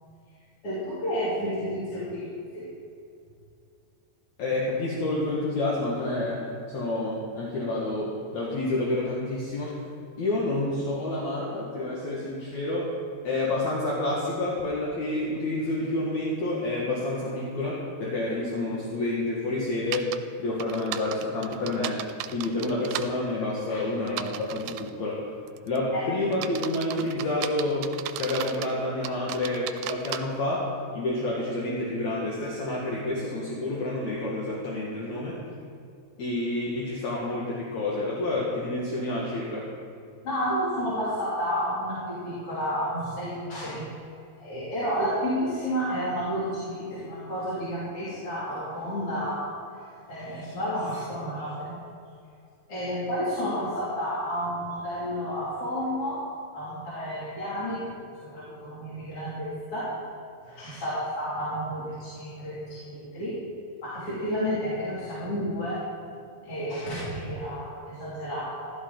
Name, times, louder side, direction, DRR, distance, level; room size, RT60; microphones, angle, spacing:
voice 1, 0.6-2.7 23.7-24.1 25.9-26.0 40.2-43.9 44.4-49.5 50.1-51.8 52.7-56.2 56.5-57.9 58.2-59.9 60.5-63.4 63.8-65.8 66.4-68.7, equal, 40° left, -10 dB, 3.6 m, -31 dB
voice 2, 4.4-9.8 10.2-12.9 13.2-20.1 20.4-22.0 22.3-25.2 25.6-27.9 28.2-35.4 36.2-39.7, left 2 dB, 55° left, -4 dB, 2.7 m, -29 dB
sound 1, 19.9-20.2 20.6-23.1 24.1-24.9 25.5-25.8 26.3-28.7 29.0-30.2, right 13 dB, 85° right, 2.4 m, -35 dB
15.5 x 13.5 x 3.9 m, 2.5 s
omnidirectional pair, 4.3 m